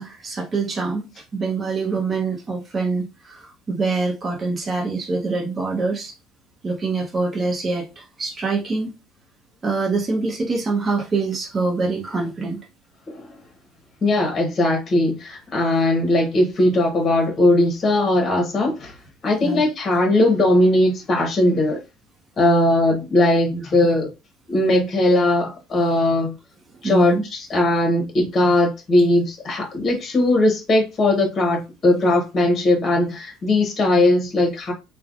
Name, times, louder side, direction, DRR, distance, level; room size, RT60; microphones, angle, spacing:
voice 1, 0.0-6.1 6.6-8.9 9.6-12.6 19.4-19.6 23.5-23.9 26.7-27.2, right 3 dB, 30° right, 0.8 m, -25 dB
voice 2, 14.0-18.9 19.2-21.8 22.4-24.1 24.5-26.3 26.8-34.7, left 1 dB, 35° left, 1.0 m, -19 dB
3.2 x 2.1 x 2.5 m
supercardioid pair, 90°, 0 cm